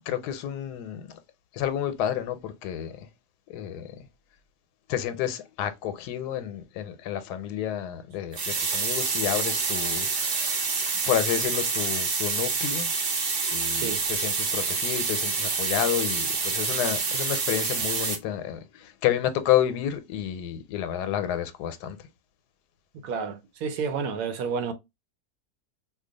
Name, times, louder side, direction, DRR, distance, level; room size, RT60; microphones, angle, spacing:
voice 1, 0.1-1.2 1.5-3.1 3.5-3.9 4.9-10.6 11.1-12.9 13.5-22.0, left 10 dB, 85° left, 1.1 m, -30 dB
sound 1, 8.3-18.2, right 4 dB, 50° right, 0.6 m, -27 dB
voice 2, 13.7-14.0 23.0-24.7, right 5 dB, 70° right, 1.0 m, -30 dB
2.7 x 2.2 x 3.8 m
omnidirectional pair, 1.7 m